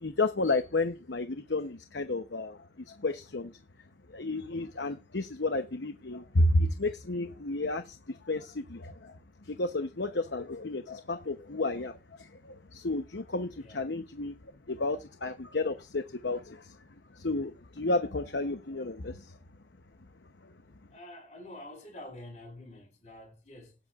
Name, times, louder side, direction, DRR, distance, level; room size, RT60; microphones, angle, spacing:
voice 1, 0.0-2.6 2.9-3.5 4.1-8.0 8.3-9.1 9.5-14.3 14.7-16.6 17.2-19.3, left 2 dB, 85° left, 0.9 m, -31 dB
voice 2, 20.9-23.8, left 1 dB, 40° left, 5.1 m, -47 dB
18.5 x 8.0 x 2.5 m
head